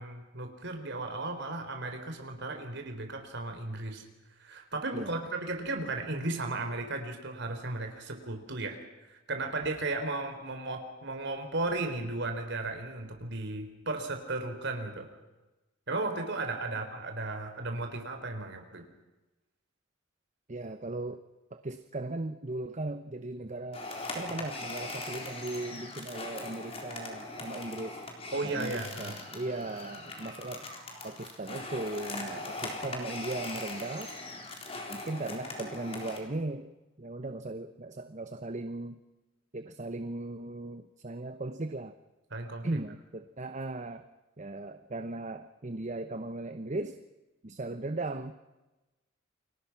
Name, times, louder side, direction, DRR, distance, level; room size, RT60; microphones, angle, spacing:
voice 1, 0.0-4.0 4.4-8.8 9.0-15.1 15.9-18.9 28.3-29.1 42.3-42.7, right 2 dB, 60° right, 5 dB, 3.8 m, -35 dB
voice 2, 4.9-5.3 16.7-16.8 20.5-21.2 21.5-23.9 24.1-28.0 28.4-30.7 31.0-34.1 34.9-39.0 39.5-41.9 42.6-44.1 44.4-47.0 47.4-48.3, right 2 dB, 35° right, 10 dB, 0.9 m, -37 dB
sound 1, 23.7-36.2, left 2 dB, 30° left, 4.0 m, -40 dB
29.5 x 23.0 x 5.9 m, 1.1 s
head